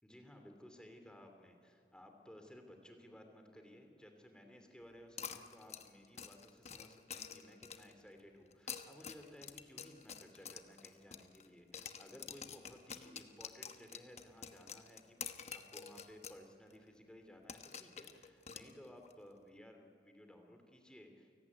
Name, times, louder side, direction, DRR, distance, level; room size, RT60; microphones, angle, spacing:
voice 1, 0.0-15.2 15.5-21.4, left 1 dB, 5° left, 4 dB, 2.6 m, -58 dB
sound 1, 5.2-8.0 8.5-11.5 11.7-16.4 16.7-16.8 17.5-19.1, left 7 dB, 40° left, 1.1 m, -49 dB
29.0 x 18.0 x 9.6 m, 2.2 s
head